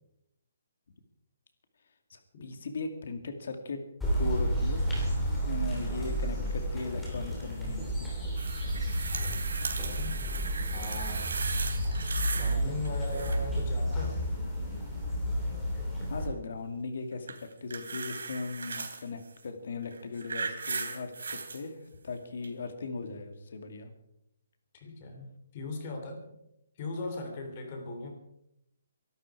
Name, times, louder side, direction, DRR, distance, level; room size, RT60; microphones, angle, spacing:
voice 1, 2.1-3.8 4.2-4.9 5.4-8.1 16.1-23.9, left 4 dB, 50° left, 7 dB, 2.4 m, -38 dB
sound 1, 4.0-16.3, equal, 5° left, 3.2 m, -31 dB
voice 2, 5.7-6.0 9.8-10.2 10.7-11.3 12.3-14.4 24.7-26.2 26.8-28.1, left 2 dB, 25° left, 4 dB, 3.2 m, -39 dB
sound 2, 8.3-12.6 12.8-13.6 17.3-19.0 19.8-21.6 22.4-22.5, right 4 dB, 80° right, 3.3 m, -37 dB
23.5 x 11.5 x 4.8 m, 0.81 s
hypercardioid pair, 180°, 0 cm